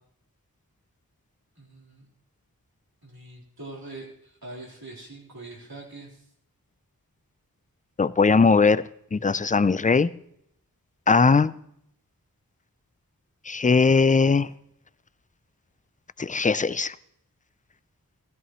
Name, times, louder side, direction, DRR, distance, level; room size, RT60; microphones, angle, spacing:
voice 1, 1.6-2.1 3.0-6.2, right 2 dB, 80° right, -4 dB, 3.8 m, -43 dB
voice 2, 8.0-8.8 9.1-10.1 11.1-11.5 13.5-14.5 16.2-16.9, left 4 dB, 25° left, 17 dB, 0.4 m, -19 dB
15.5 x 14.0 x 3.1 m, 0.73 s
wide cardioid pair, 45°, 36 cm